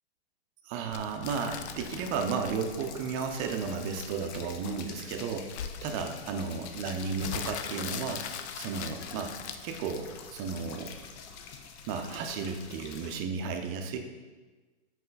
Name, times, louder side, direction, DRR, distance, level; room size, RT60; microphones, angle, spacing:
voice 1, 0.6-5.5 5.8-8.3 8.6-9.3 9.6-10.9 11.9-14.0, right 5 dB, 35° right, 5 dB, 0.6 m, -33 dB
sound 1, 0.9-10.4, left 7 dB, 75° left, 0.6 m, -41 dB
sound 2, 1.3-13.2, left 6 dB, 25° left, 0.3 m, -47 dB
5.6 x 4.3 x 4.0 m, 1.3 s
hypercardioid pair, 125°, 33 cm